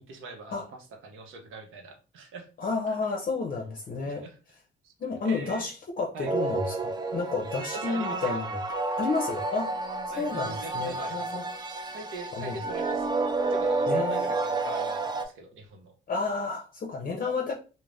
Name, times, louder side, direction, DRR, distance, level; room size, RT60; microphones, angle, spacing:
voice 1, 0.0-2.5 2.9-3.0 4.0-4.4 4.8-4.9 5.2-5.7 6.1-6.3 7.7-8.4 10.1-11.4 11.9-13.1 13.5-15.9, right 3 dB, 85° right, 0.7 m, -42 dB
voice 2, 2.6-4.3 5.0-8.6 9.0-9.8 10.1-11.4 12.3-12.6 13.9-14.3 16.1-17.5, left 4 dB, 45° left, 0.6 m, -31 dB
sound 1, 6.2-15.2, right 3 dB, 20° right, 0.4 m, -30 dB
2.5 x 2.1 x 3.2 m
cardioid pair, 90°, 20 cm